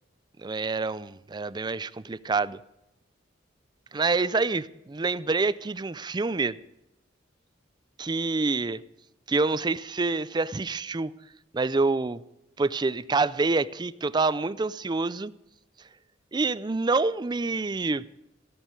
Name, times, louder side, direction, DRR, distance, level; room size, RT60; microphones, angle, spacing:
voice 1, 0.4-2.6 3.9-6.6 8.0-8.8 9.3-11.1 11.5-12.2 12.6-15.3 16.3-18.1, right 3 dB, 20° right, 0.4 m, -27 dB
17.0 x 6.4 x 9.4 m
head